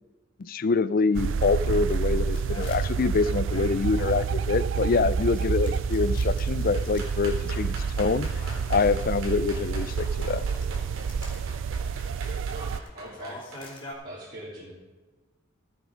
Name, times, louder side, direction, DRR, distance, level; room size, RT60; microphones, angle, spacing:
voice 1, 0.4-8.3 8.7-10.4, left 4 dB, 45° left, 17 dB, 0.4 m, -25 dB
sound 1, 1.1-12.8, right 5 dB, 65° right, 0.3 m, -28 dB
Pouring a Monster Mega Energy Drink, 1.2-4.8 5.2-7.2 7.5-7.6 8.0-10.7 11.1-11.4 11.9-12.3 12.7-13.9, left 1 dB, 25° left, 3.1 m, -46 dB
sound 2, 6.7-13.6, right 2 dB, 85° right, 3.7 m, -42 dB
voice 2, 12.5-13.7 14.0-14.7, right 1 dB, 45° right, -8 dB, 3.6 m, -42 dB
14.5 x 9.0 x 5.1 m, 1.2 s
head